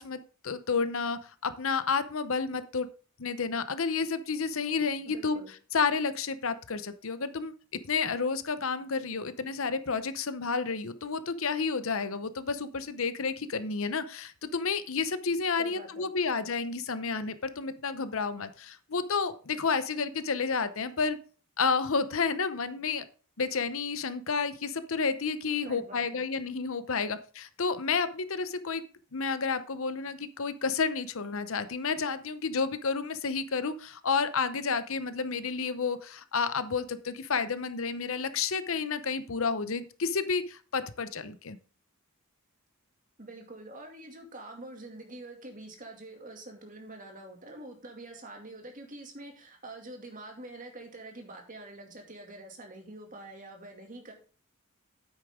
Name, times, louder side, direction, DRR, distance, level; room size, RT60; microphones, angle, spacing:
voice 1, 0.0-2.9 3.2-5.4 5.7-7.5 7.9-21.2 21.6-23.0 23.4-28.8 29.1-41.6, left 5 dB, 65° left, 12 dB, 0.8 m, -30 dB
voice 2, 5.0-5.5 15.6-16.1 25.6-26.2 43.2-54.1, right 2 dB, 35° right, 2 dB, 2.5 m, -46 dB
9.7 x 8.2 x 3.7 m, 0.38 s
head